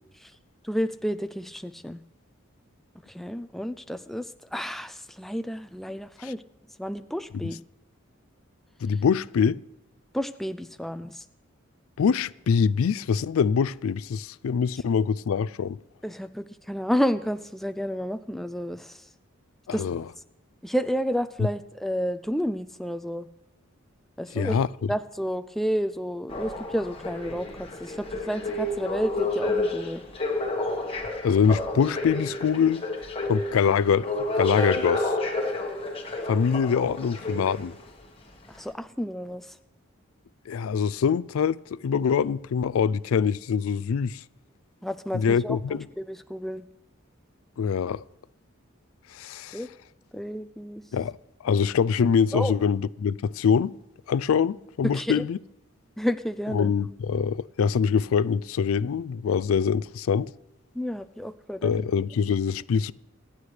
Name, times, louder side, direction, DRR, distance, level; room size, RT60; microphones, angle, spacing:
voice 1, 0.6-2.0 3.1-6.4 6.8-7.6 10.1-11.2 16.0-19.0 19.7-19.8 20.6-23.3 24.2-24.6 24.9-30.0 38.5-39.5 44.8-45.6 46.0-46.6 49.5-49.7 50.1-50.8 52.3-52.5 54.9-55.2 56.0-56.7 60.7-61.9, equal, ahead, 0.3 m, -30 dB
voice 2, 8.8-9.6 12.0-15.8 19.7-20.0 21.4-21.5 24.3-24.7 31.2-32.9 33.3-35.1 36.2-37.8 40.5-44.2 45.1-45.9 47.6-48.0 49.1-49.6 50.9-51.1 51.4-53.8 54.1-55.4 56.5-60.3 61.6-62.9, left 6 dB, 80° left, 0.4 m, -24 dB
sound 1, 26.3-37.9 38.5-38.6, left 2 dB, 25° left, 1.4 m, -30 dB
25.5 x 9.6 x 3.3 m
head